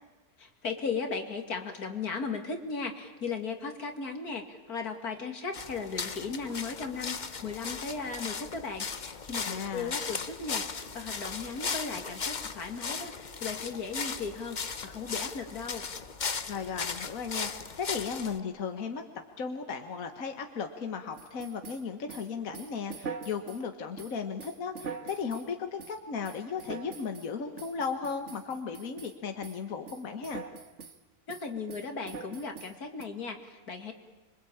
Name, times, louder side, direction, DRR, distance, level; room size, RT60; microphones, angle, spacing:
voice 1, 0.4-15.8 31.3-33.9, left 4 dB, 90° left, 5 dB, 2.8 m, -36 dB
sound 1, 5.5-18.4, left 5 dB, 35° left, 0.9 m, -37 dB
voice 2, 9.4-10.0 16.5-19.0 19.4-30.4, left 6 dB, 65° left, 5 dB, 1.8 m, -36 dB
sound 2, 21.2-23.6 24.0-25.5 25.8-26.0 26.2-27.3 27.6-29.2 29.4-29.6 29.9-31.0 31.3-33.0, right 5 dB, 55° right, 1.6 m, -43 dB
26.5 x 23.5 x 8.7 m, 1.2 s
omnidirectional pair, 1.6 m